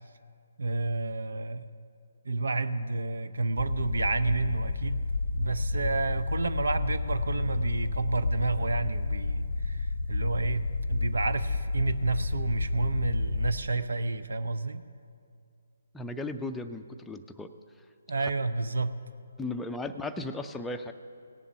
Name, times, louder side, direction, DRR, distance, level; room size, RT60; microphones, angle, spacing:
voice 1, 0.6-1.6 2.3-5.0 5.3-10.6 10.9-14.8 18.1-18.9, right 3 dB, 75° right, 12 dB, 0.6 m, -30 dB
sound 1, 3.6-13.6, left 3 dB, 80° left, 0.6 m, -30 dB
voice 2, 15.9-17.5 18.2-18.3 19.4-20.9, left 2 dB, 5° left, 5 dB, 0.4 m, -36 dB
17.5 x 7.2 x 5.7 m, 2.3 s
figure-of-eight pair, 145°, 0 cm